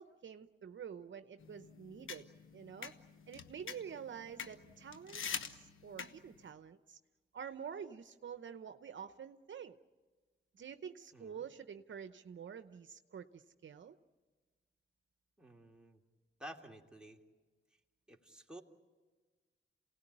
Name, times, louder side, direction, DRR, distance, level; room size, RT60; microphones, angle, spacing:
voice 1, 0.0-2.3 2.5-2.9 3.3-5.2 5.5-7.0 7.3-9.8 10.5-14.0, right 7 dB, 70° right, 10 dB, 0.9 m, -48 dB
sound 1, 1.4-6.4, left 6 dB, 75° left, 1.2 m, -46 dB
voice 2, 11.1-11.4 15.4-16.0 16.4-17.2 18.1-18.6, right 1 dB, 5° right, 0 dB, 2.7 m, -52 dB
28.0 x 18.0 x 10.0 m, 1.4 s
cardioid pair, 70°, 20 cm